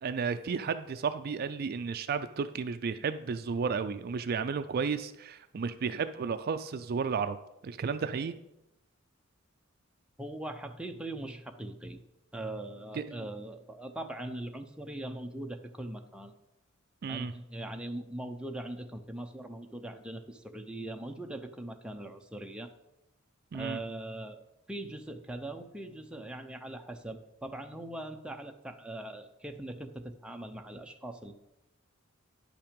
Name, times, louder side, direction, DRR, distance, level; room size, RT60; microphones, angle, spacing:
voice 1, 0.0-7.4 7.6-8.3 12.9-13.3 17.0-17.3 23.5-23.8, right 5 dB, 45° right, 10 dB, 0.4 m, -33 dB
voice 2, 10.2-12.0 12.3-16.3 17.1-22.7 23.5-24.4 24.7-31.3, right 1 dB, 5° right, 4 dB, 0.6 m, -41 dB
10.0 x 5.8 x 5.2 m, 0.88 s
head